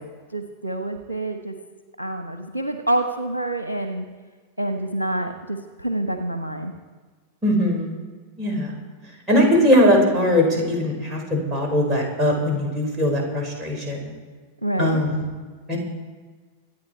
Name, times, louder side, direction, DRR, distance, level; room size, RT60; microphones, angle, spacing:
voice 1, 0.3-1.5 2.0-4.0 4.6-6.7 14.6-15.0, right 1 dB, 80° right, 8 dB, 1.1 m, -27 dB
voice 2, 7.4-7.9 8.4-8.7 9.3-14.1 14.8-15.3 15.7-15.8, equal, 20° right, 0 dB, 4.9 m, -20 dB
25.5 x 9.0 x 4.5 m, 1.5 s
figure-of-eight pair, 90°, 0 cm